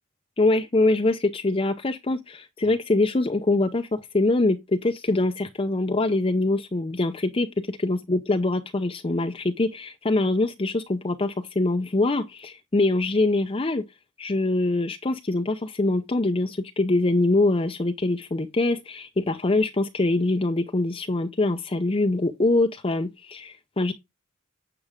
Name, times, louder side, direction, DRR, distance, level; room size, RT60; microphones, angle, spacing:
voice 1, 0.4-13.8 14.2-23.9, left 2 dB, 30° left, 0.6 m, -24 dB
9.8 x 6.1 x 3.6 m
head